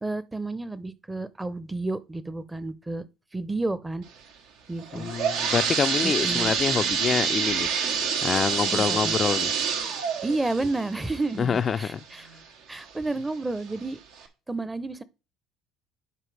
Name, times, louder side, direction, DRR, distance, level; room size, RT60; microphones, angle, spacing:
voice 1, 0.0-3.1 3.3-4.0 4.7-5.1 6.0-6.5 8.7-9.1 10.2-12.3 12.7-14.0 14.5-15.0, right 2 dB, 15° right, 0.7 m, -31 dB
sound 1, 4.8-12.4 12.9-13.0 13.7-13.8 14.2-14.3, right 6 dB, 75° right, 1.3 m, -27 dB
voice 2, 4.9-7.7 8.2-9.5 11.4-12.3, left 6 dB, 40° left, 0.4 m, -26 dB
11.0 x 4.6 x 3.4 m
supercardioid pair, 80°, 0 cm